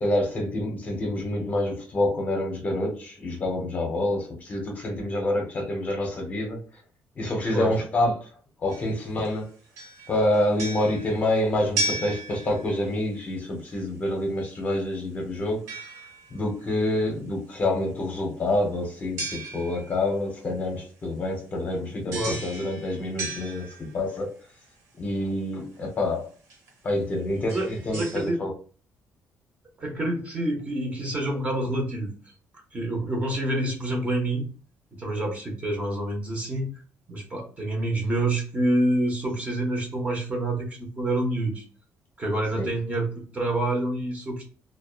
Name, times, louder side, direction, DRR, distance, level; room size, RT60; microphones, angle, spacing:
voice 1, 0.0-6.6 7.2-8.3 8.6-9.5 10.1-15.8 16.3-24.3 25.0-26.3 26.8-28.5 42.5-42.7, left 1 dB, 30° left, 0.6 m, -27 dB
sound 1, 8.7-9.4 9.7-13.0 15.7-16.5 19.2-20.1 22.1-24.2 25.7-25.8 26.5-26.7 27.3-28.3, right 2 dB, 80° right, 1.0 m, -35 dB
voice 2, 22.1-22.4 27.5-28.4 29.8-32.1 32.7-34.5 35.0-36.7 37.1-41.6 42.2-44.4, right 1 dB, 25° right, 0.7 m, -27 dB
2.6 x 2.1 x 2.3 m
cardioid pair, 175°, 5 cm